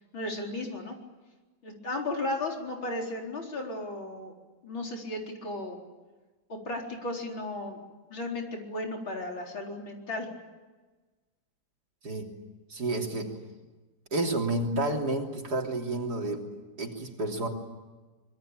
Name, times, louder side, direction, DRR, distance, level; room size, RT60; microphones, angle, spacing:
voice 1, 0.1-1.0 1.6-4.4 4.6-5.8 6.5-7.8 8.1-10.3, left 2 dB, 80° left, 1 dB, 5.0 m, -35 dB
voice 2, 12.0-12.4 12.7-13.4 14.1-17.5, right 2 dB, 55° right, 1 dB, 3.8 m, -30 dB
26.0 x 22.0 x 9.0 m, 1.2 s
omnidirectional pair, 2.1 m